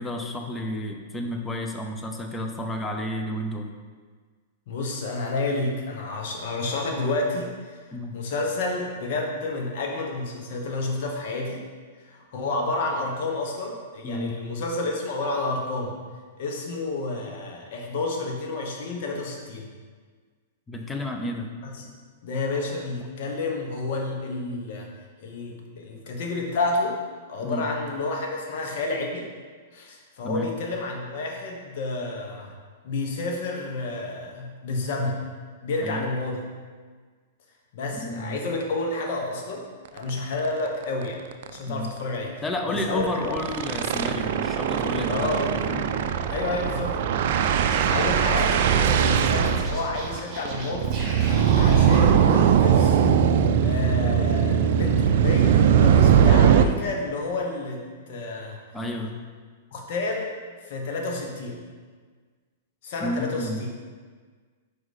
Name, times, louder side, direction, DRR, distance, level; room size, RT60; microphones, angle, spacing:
voice 1, 0.0-3.7 7.9-8.2 14.0-14.4 20.7-21.5 27.4-27.7 30.2-30.5 35.8-36.0 38.0-38.4 41.7-41.9 42.4-45.8 58.7-59.2 63.0-63.6, left 1 dB, 10° left, 3 dB, 0.7 m, -31 dB
voice 2, 4.7-7.8 8.1-11.6 12.0-16.0 16.4-19.7 21.8-21.9 22.2-24.9 25.2-27.0 27.3-29.3 29.7-32.5 32.8-35.2 35.6-36.4 37.7-39.6 39.9-41.2 41.5-43.4 45.1-45.5 46.3-47.0 47.2-47.4 47.8-50.9 51.5-53.0 53.6-58.6 59.7-61.6 62.8-63.7, left 2 dB, 60° left, 1 dB, 1.2 m, -30 dB
sound 1, 40.0-40.1 40.4-40.5 40.8-41.0 41.3-41.5 42.8-56.7, right 8 dB, 60° right, 0.4 m, -20 dB
Scratching (performance technique), 47.4-52.0, right 2 dB, 30° right, 1.4 m, -39 dB
5.0 x 4.7 x 4.2 m, 1.5 s
hypercardioid pair, 125°, 0 cm